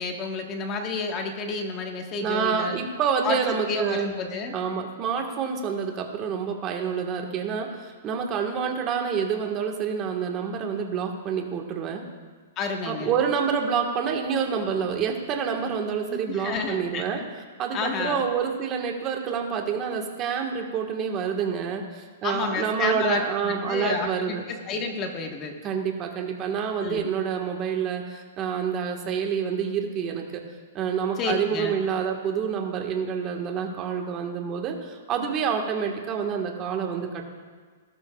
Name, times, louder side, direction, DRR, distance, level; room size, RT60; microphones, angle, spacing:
voice 1, 0.0-2.8 3.2-4.5 12.6-13.1 16.1-17.1 17.7-18.3 22.2-25.5 26.8-27.1 31.2-31.8, left 4 dB, 25° left, 3 dB, 1.4 m, -30 dB
voice 2, 2.2-4.1 4.5-12.0 12.8-17.2 17.6-24.4 25.6-30.4 30.7-37.2, right 7 dB, 25° right, 2 dB, 1.5 m, -28 dB
18.0 x 12.5 x 2.4 m, 1.5 s
hypercardioid pair, 150°, 0 cm